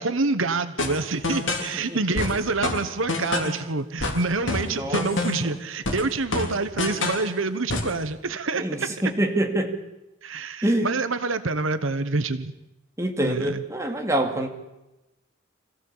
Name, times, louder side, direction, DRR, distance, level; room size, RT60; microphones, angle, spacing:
voice 1, 0.0-8.9 10.2-12.5 13.2-13.6, right 3 dB, 75° right, 11 dB, 1.2 m, -27 dB
sound 1, 0.8-1.7 2.2-3.6 4.0-5.5 5.9-7.3 7.7-8.0, left 2 dB, 65° left, 3.8 m, -27 dB
voice 2, 4.7-5.0 5.4-5.5 8.6-9.7 10.6-10.9 13.0-14.5, right 1 dB, 15° right, 3 dB, 2.5 m, -25 dB
26.5 x 16.0 x 8.7 m, 0.98 s
head